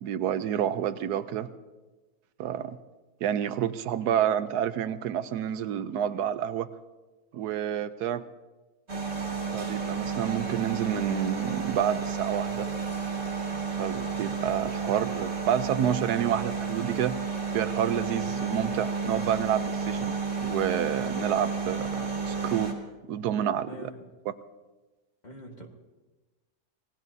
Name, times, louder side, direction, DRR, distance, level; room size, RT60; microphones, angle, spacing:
voice 1, 0.0-1.5 2.4-2.8 3.2-6.7 7.3-8.2 9.5-12.7 13.7-17.1 17.5-22.7 23.1-23.9, right 9 dB, 90° right, 13 dB, 1.2 m, -29 dB
sound 1, 8.9-22.7, right 5 dB, 45° right, 3.0 m, -31 dB
voice 2, 23.7-24.0 25.2-25.7, left 1 dB, 30° left, 1 dB, 1.7 m, -43 dB
27.0 x 18.5 x 2.7 m, 1.2 s
omnidirectional pair, 1.7 m